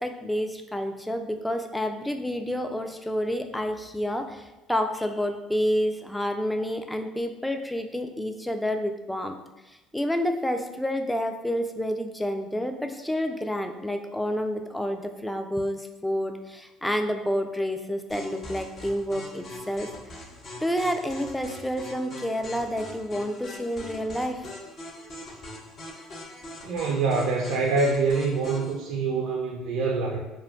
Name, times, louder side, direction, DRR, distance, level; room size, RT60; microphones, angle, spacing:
voice 1, 0.0-9.4 9.9-19.9 20.6-24.5, equal, 5° left, 6 dB, 0.3 m, -29 dB
sound 1, 18.1-28.7, left 2 dB, 45° left, 0.7 m, -42 dB
voice 2, 26.6-30.2, right 4 dB, 75° right, 0 dB, 0.3 m, -25 dB
2.2 x 2.1 x 3.4 m, 1.1 s
hypercardioid pair, 70°, 0 cm